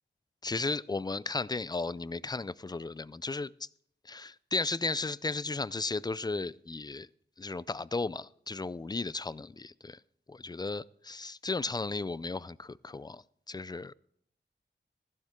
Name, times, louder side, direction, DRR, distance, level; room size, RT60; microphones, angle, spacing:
voice 1, 0.4-3.7 4.1-7.1 7.4-10.0 10.3-13.2 13.5-13.9, left 3 dB, 20° left, 0.3 m, -35 dB
14.5 x 12.0 x 3.6 m
wide cardioid pair, 90°, 19 cm